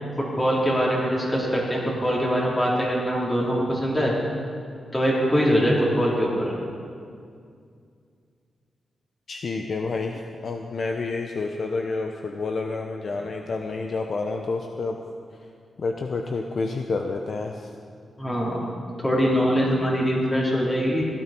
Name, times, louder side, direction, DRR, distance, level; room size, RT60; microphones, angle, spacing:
voice 1, 0.2-4.1 4.9-6.5 18.2-18.6 19.0-21.1, equal, 20° left, -5 dB, 4.1 m, -23 dB
voice 2, 9.3-15.0 15.8-17.7, left 3 dB, 60° left, 3 dB, 0.8 m, -29 dB
16.5 x 11.5 x 4.6 m, 2.3 s
cardioid pair, 80°, 0 cm